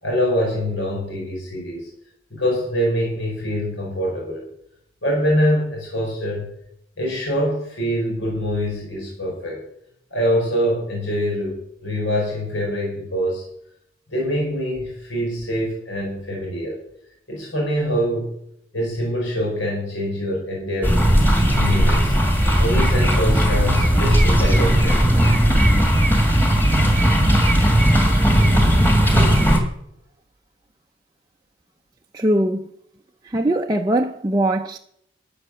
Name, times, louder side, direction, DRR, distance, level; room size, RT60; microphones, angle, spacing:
voice 1, 0.0-1.9 2.3-4.4 5.0-6.5 7.0-9.6 10.1-13.4 14.1-16.8 17.3-18.3 18.7-21.1 21.5-22.1 22.6-25.2 26.7-26.8, equal, 80° left, 5.0 m, -24 dB
sound 1, 20.8-29.6, equal, 10° left, 2.0 m, -16 dB
voice 2, 32.1-32.7 33.2-34.8, right 1 dB, 20° right, 0.5 m, -21 dB
13.0 x 8.7 x 7.4 m
head